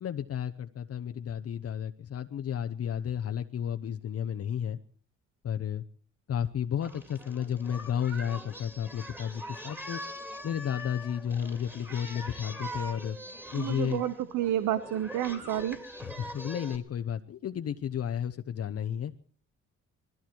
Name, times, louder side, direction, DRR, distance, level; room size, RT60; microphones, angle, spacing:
voice 1, 0.0-4.8 5.4-5.8 6.3-10.0 10.4-13.2 13.5-14.0 16.0-19.1, left 9 dB, 55° left, 8 dB, 0.9 m, -32 dB
Singing, 6.8-16.8, equal, 5° right, 2.8 m, -43 dB
voice 2, 13.6-15.8, right 12 dB, 85° right, 13 dB, 1.1 m, -30 dB
20.5 x 14.5 x 4.6 m, 0.43 s
cardioid pair, 90°, 30 cm